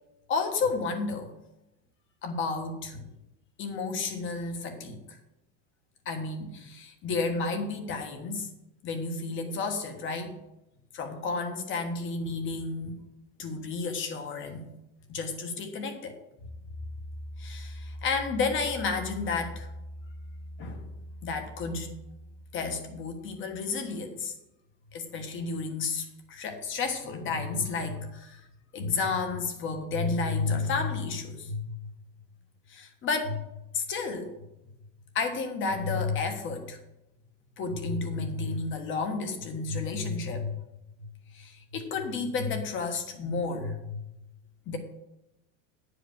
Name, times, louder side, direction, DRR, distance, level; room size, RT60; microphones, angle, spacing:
voice 1, 0.3-1.3 2.2-3.1 3.6-5.2 6.0-8.5 8.8-10.3 10.9-13.0 13.4-14.7 15.1-16.2 17.4-19.7 20.6-20.8 21.2-21.9 22.5-24.3 24.9-28.4 28.7-31.7 32.7-33.4 33.7-34.3 35.1-36.8 37.6-40.6 41.3-44.0 44.7-44.8, left 4 dB, 30° left, 5 dB, 1.4 m, -31 dB
10.0 x 5.1 x 7.3 m, 0.91 s
supercardioid pair, 160°, 39 cm